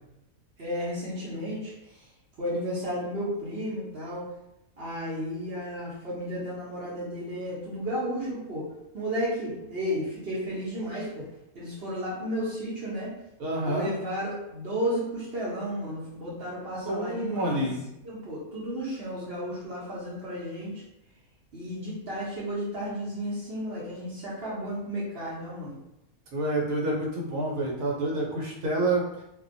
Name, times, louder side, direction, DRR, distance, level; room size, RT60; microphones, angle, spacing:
voice 1, 0.6-1.7 2.4-4.3 4.8-8.7 8.9-11.2 11.5-13.1 13.7-17.7 18.0-20.7 21.5-25.8, equal, 50° right, -6 dB, 0.9 m, -33 dB
voice 2, 13.4-13.9 16.8-17.9 26.3-29.0, right 1 dB, 75° right, -3 dB, 1.1 m, -28 dB
2.5 x 2.2 x 2.5 m, 0.85 s
omnidirectional pair, 1.5 m